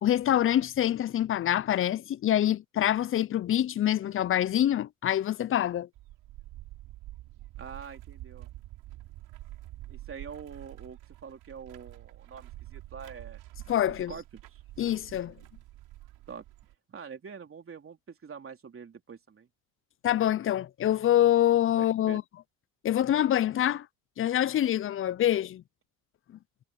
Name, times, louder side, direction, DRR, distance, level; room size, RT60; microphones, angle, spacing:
voice 1, 0.0-5.9 13.7-14.1 14.8-15.3 20.0-22.2 22.8-23.9 24.2-25.6, left 11 dB, 35° left, 0.5 m, -25 dB
sound 1, 5.9-16.7, right 16 dB, 75° right, 5.2 m, -47 dB
voice 2, 7.6-8.5 9.9-13.4 14.1-14.2 14.5-14.6 16.3-16.4 16.9-19.5 21.8-22.2, right 6 dB, 35° right, 3.5 m, -45 dB
supercardioid pair, 80°, 38 cm